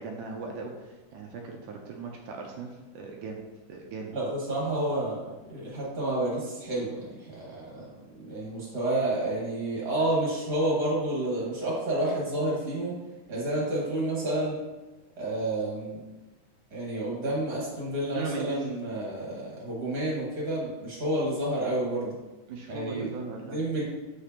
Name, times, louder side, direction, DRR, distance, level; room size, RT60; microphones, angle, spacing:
voice 1, 0.0-3.4 3.7-4.1 18.1-18.7 22.5-23.6, right 4 dB, 80° right, 1 dB, 2.1 m, -38 dB
voice 2, 4.1-7.9 8.2-13.0 13.3-14.6 15.2-16.0 16.7-22.1 22.7-23.1 23.5-23.8, right 1 dB, 35° right, -5 dB, 2.0 m, -30 dB
8.1 x 5.0 x 2.9 m, 1.1 s
omnidirectional pair, 3.9 m